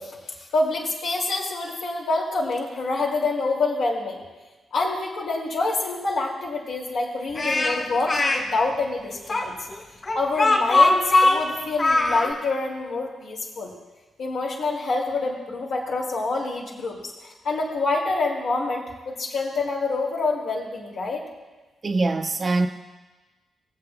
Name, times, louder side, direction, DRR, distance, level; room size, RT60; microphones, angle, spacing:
voice 1, 0.0-4.2 4.7-9.6 10.1-13.7 14.2-21.2, left 3 dB, 75° left, -4 dB, 2.6 m, -27 dB
Speech, 7.3-8.4 9.3-12.3, left 2 dB, 40° left, 2.4 m, -20 dB
voice 2, 21.8-22.7, right 3 dB, 45° right, 6 dB, 0.7 m, -23 dB
22.5 x 7.7 x 2.3 m, 1.2 s
supercardioid pair, 45°, 0 cm